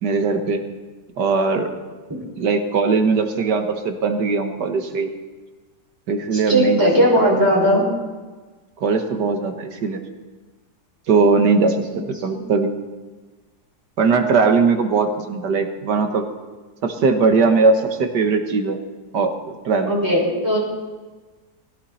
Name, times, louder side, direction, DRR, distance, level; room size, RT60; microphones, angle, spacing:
voice 1, 0.0-0.6 1.2-1.7 2.4-5.1 6.1-6.9 8.8-10.0 11.1-11.8 12.1-12.7 14.0-16.2 16.8-18.8 19.1-19.3 19.7-20.0, right 4 dB, 80° right, 6 dB, 2.0 m, -19 dB
voice 2, 6.3-7.9 12.3-12.4 19.9-20.6, equal, 10° right, -5 dB, 5.7 m, -17 dB
20.5 x 16.0 x 4.3 m, 1.3 s
omnidirectional pair, 1.8 m